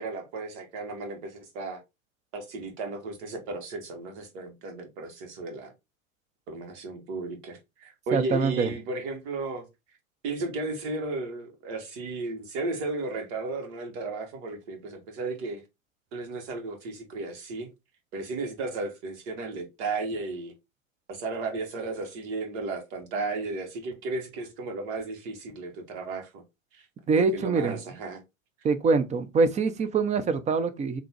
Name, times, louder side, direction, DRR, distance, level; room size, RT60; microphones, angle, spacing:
voice 1, 0.0-1.8 2.3-5.7 6.5-9.7 10.2-15.6 16.1-17.7 18.1-20.5 21.1-26.4 26.7-26.9 27.2-28.2, right 3 dB, 55° right, 1.8 m, -34 dB
voice 2, 8.1-8.7 27.1-27.8 28.6-31.0, right 4 dB, 15° right, 0.6 m, -24 dB
3.8 x 2.8 x 4.5 m
hypercardioid pair, 95°, 41 cm